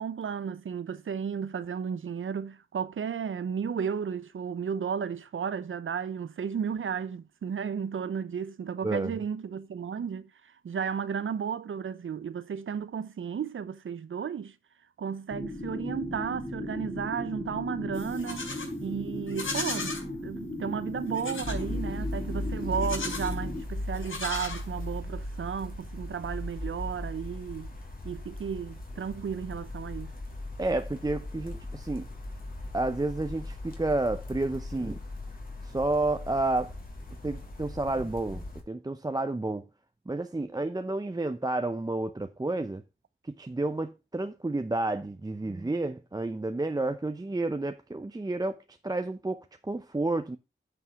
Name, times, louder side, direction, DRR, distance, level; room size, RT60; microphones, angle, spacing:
voice 1, 0.0-14.6 15.0-18.5 18.8-27.7 28.0-30.1, right 7 dB, 75° right, 0.7 m, -34 dB
voice 2, 8.8-9.1 30.6-32.1 32.7-35.0 35.7-36.7 37.2-39.6 40.1-42.8 43.4-48.6 48.8-50.4, right 2 dB, 20° right, 0.7 m, -30 dB
sound 1, 15.3-23.6, left 1 dB, 15° left, 3.6 m, -37 dB
Livestock farm animals working animals, 17.9-18.7 19.3-20.0 21.1-21.6 22.7-23.4 23.9-25.0, left 3 dB, 80° left, 4.0 m, -36 dB
sound 2, 21.4-38.6, left 1 dB, 45° left, 3.1 m, -38 dB
9.6 x 5.5 x 4.6 m
cardioid pair, 60°, 20 cm